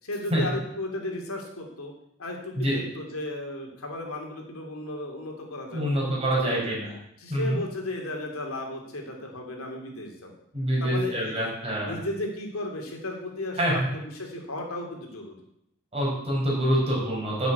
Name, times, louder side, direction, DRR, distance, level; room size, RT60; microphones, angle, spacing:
voice 1, 0.0-1.9 2.2-6.8 7.2-10.3 10.8-11.5 11.8-15.4, left 1 dB, 80° left, 1 dB, 3.0 m, -35 dB
voice 2, 5.7-6.9 7.3-7.6 10.5-12.0 13.6-13.9 15.9-17.5, right 1 dB, 30° right, -4 dB, 5.6 m, -26 dB
10.5 x 7.3 x 8.4 m, 0.78 s
head